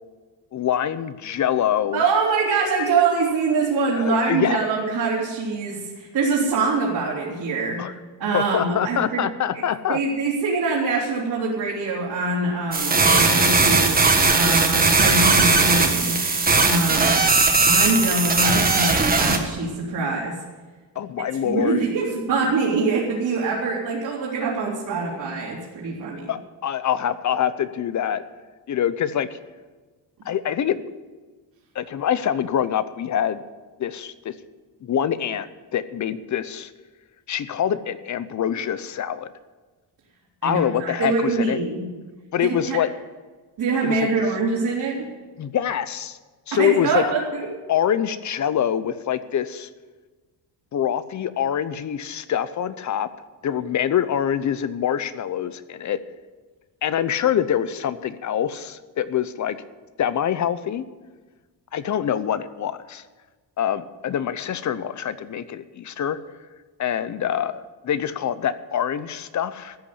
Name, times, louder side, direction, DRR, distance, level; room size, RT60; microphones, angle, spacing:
voice 1, 0.5-2.0 4.0-4.6 7.8-7.9 8.3-10.0 21.0-21.8 26.3-28.3 28.7-29.4 30.2-30.8 31.7-33.4 33.8-34.3 34.8-36.7 37.3-39.3 40.4-41.6 42.3-42.9 43.8-44.1 45.4-46.2 46.5-47.0 47.7-49.7 50.7-53.1 53.4-56.0 56.8-59.6 60.0-60.8 61.7-63.0 63.6-66.2 66.8-69.8, left 9 dB, 45° left, 15 dB, 0.7 m, -25 dB
voice 2, 1.9-7.8 8.2-9.2 9.5-16.2 16.6-17.3 17.6-20.4 21.2-26.3 40.4-41.8 42.4-42.8 43.6-45.1 46.6-47.5, right 4 dB, 60° right, -5 dB, 3.1 m, -24 dB
sound 1, 12.7-19.4, right 3 dB, 20° right, 1.5 m, -18 dB
13.5 x 8.4 x 8.5 m, 1.3 s
cardioid pair, 160°, 41 cm